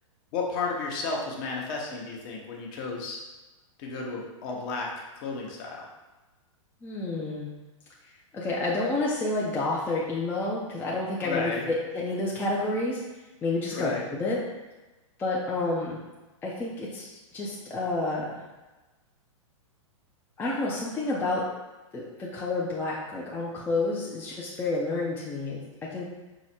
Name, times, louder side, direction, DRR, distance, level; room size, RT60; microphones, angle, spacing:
voice 1, 0.3-3.2 3.8-4.9 5.2-5.8 11.2-11.7 13.7-14.0, left 4 dB, 40° left, -1 dB, 0.9 m, -32 dB
voice 2, 6.8-7.5 8.3-13.0 13.4-14.4 15.2-16.0 16.4-18.4 20.4-21.5 21.9-26.1, left 2 dB, 10° left, -5 dB, 0.5 m, -29 dB
4.7 x 2.1 x 4.2 m, 1.1 s
hypercardioid pair, 135°, 17 cm